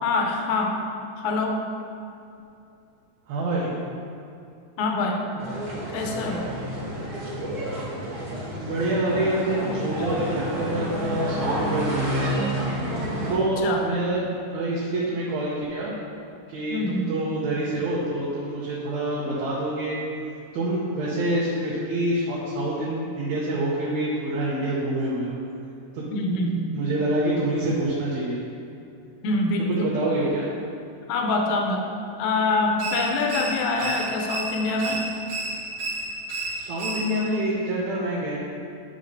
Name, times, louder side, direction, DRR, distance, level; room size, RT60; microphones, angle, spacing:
voice 1, 0.0-0.8 1.2-1.6 4.8-5.3 5.9-6.5 13.6-13.8 16.7-17.2 26.1-26.8 29.2-29.9 31.1-31.9 32.2-35.1, left 2 dB, 80° left, 2 dB, 2.1 m, -25 dB
voice 2, 3.3-3.8 8.6-12.3 13.3-14.2 14.5-16.0 16.5-20.0 20.5-25.3 25.9-26.0 26.7-28.4 29.7-30.5 36.5-38.4, right 1 dB, 85° right, -6 dB, 2.3 m, -26 dB
sound 1, 5.4-13.4, right 1 dB, 45° right, 1.3 m, -29 dB
sound 2, 32.8-37.4, right 2 dB, 65° right, 2.0 m, -32 dB
9.2 x 6.5 x 2.7 m, 2.6 s
omnidirectional pair, 3.3 m